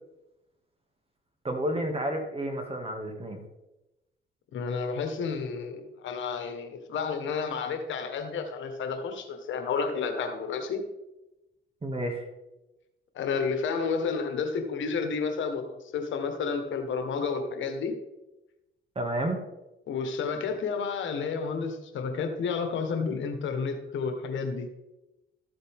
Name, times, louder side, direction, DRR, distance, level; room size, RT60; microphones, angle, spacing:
voice 1, 1.4-3.4 11.8-12.3 19.0-19.4, right 1 dB, 30° right, 3 dB, 2.3 m, -30 dB
voice 2, 4.5-10.8 13.1-18.0 19.9-24.7, left 5 dB, 75° left, 6 dB, 1.5 m, -31 dB
13.5 x 7.9 x 3.6 m, 0.97 s
cardioid pair, 90°, 20 cm